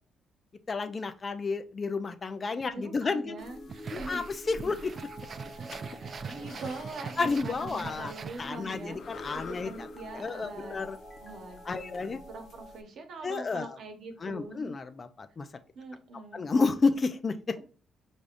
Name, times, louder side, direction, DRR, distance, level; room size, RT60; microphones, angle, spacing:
voice 1, 0.7-3.4 3.9-4.8 7.2-8.1 8.4-9.7 10.1-11.0 11.7-12.2 13.2-13.7 14.2-15.5 16.3-17.5, left 4 dB, 35° left, 9 dB, 0.5 m, -31 dB
voice 2, 2.7-3.6 3.9-4.2 4.6-4.8 5.6-9.0 9.3-10.8 11.2-14.7 15.7-16.4 17.6-17.7, right 3 dB, 65° right, 5 dB, 1.0 m, -43 dB
sound 1, 3.4-12.8, left 4 dB, 65° left, 0.8 m, -50 dB
sound 2, 3.4-12.8, equal, 20° left, 0.9 m, -48 dB
sound 3, 3.7-8.9, right 5 dB, 45° right, 0.4 m, -42 dB
5.2 x 3.4 x 2.5 m, 0.40 s
cardioid pair, 90°, 0 cm